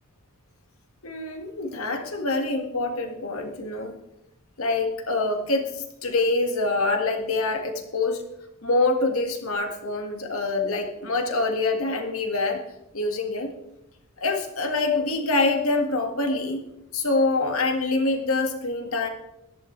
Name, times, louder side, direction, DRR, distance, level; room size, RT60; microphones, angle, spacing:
voice 1, 1.0-4.0 4.6-8.2 8.6-12.6 12.9-13.5 14.2-16.6 16.9-19.1, left 3 dB, 70° left, 5 dB, 1.9 m, -25 dB
17.0 x 11.5 x 3.3 m, 0.86 s
head